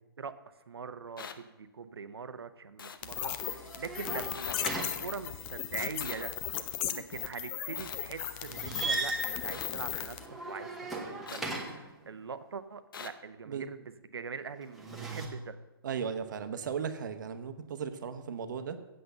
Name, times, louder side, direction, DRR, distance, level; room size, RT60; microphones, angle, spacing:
voice 1, 0.7-6.4 6.9-15.6, right 5 dB, 85° right, 12 dB, 0.9 m, -42 dB
sound 1, 1.2-1.3 2.8-3.0 4.3-4.5 6.0-6.2 7.7-8.0 9.5-9.7 11.3-11.4 12.9-13.1, left 6 dB, 60° left, 0.8 m, -43 dB
sound 2, 3.0-10.3, left 11 dB, 20° left, 0.4 m, -37 dB
sound 3, 3.2-5.6 8.4-12.0 14.6-15.3, right 2 dB, ahead, 1.1 m, -38 dB
voice 2, 15.8-18.8, right 7 dB, 50° right, 9 dB, 1.0 m, -36 dB
8.0 x 7.7 x 6.7 m, 1.1 s
hypercardioid pair, 155°, 13 cm